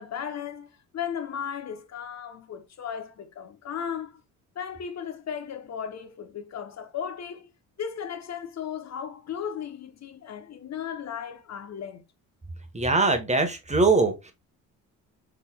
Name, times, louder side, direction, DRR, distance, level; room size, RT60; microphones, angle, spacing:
voice 1, 0.0-4.2 4.5-7.5 7.8-12.0, left 8 dB, 40° left, 0.8 m, -36 dB
voice 2, 12.7-14.3, right 3 dB, 15° right, 1.1 m, -22 dB
4.0 x 3.4 x 2.2 m
supercardioid pair, 65°, 41 cm